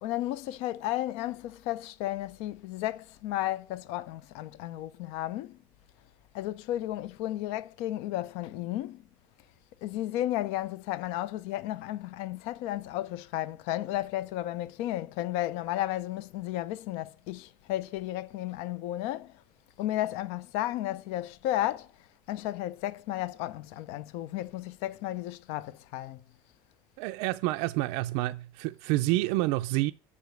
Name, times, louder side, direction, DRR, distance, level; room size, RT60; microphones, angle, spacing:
voice 1, 0.0-5.6 6.3-9.0 9.8-19.3 19.8-21.9 22.3-26.2, left 14 dB, 75° left, 0.5 m, -33 dB
voice 2, 27.0-29.9, right 18 dB, 75° right, 0.4 m, -28 dB
6.8 x 5.0 x 6.4 m
cardioid pair, 140°, 11 cm